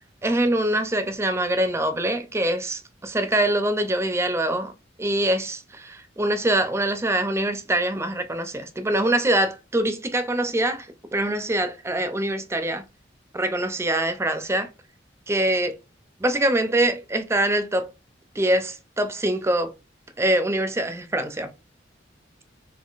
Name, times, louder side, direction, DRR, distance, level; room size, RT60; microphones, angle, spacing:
voice 1, 0.2-4.7 5.0-12.8 13.3-14.7 15.3-15.8 16.2-17.9 18.3-19.7 20.2-21.5, right 1 dB, 15° right, 0.4 m, -24 dB
3.6 x 2.9 x 2.4 m
head